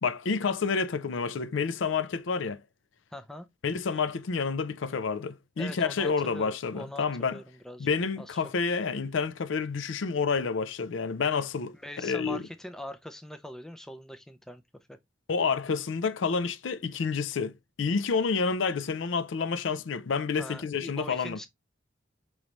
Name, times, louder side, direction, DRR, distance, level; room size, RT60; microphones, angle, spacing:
voice 1, 0.0-2.6 3.6-7.4 7.8-12.4 15.3-21.4, left 5 dB, 80° left, 0.5 m, -29 dB
voice 2, 3.1-3.5 5.6-7.9 8.2-8.4 11.8-14.6 14.9-15.0 20.4-21.5, left 1 dB, 5° left, 0.4 m, -42 dB
5.2 x 3.2 x 2.9 m
head